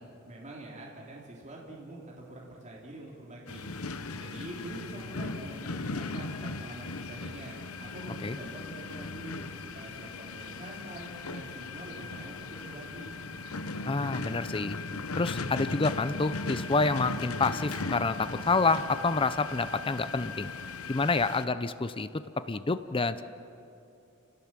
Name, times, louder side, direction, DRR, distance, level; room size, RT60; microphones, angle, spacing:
voice 1, 0.2-3.7 4.2-13.2, right 1 dB, 35° right, -3 dB, 3.0 m, -45 dB
sound 1, 3.5-21.5, left 3 dB, 85° left, 1.1 m, -38 dB
voice 2, 13.9-14.8 15.2-20.5 20.9-22.1 22.5-23.2, left 3 dB, 25° left, 13 dB, 0.6 m, -28 dB
29.5 x 17.5 x 7.5 m, 2.7 s
head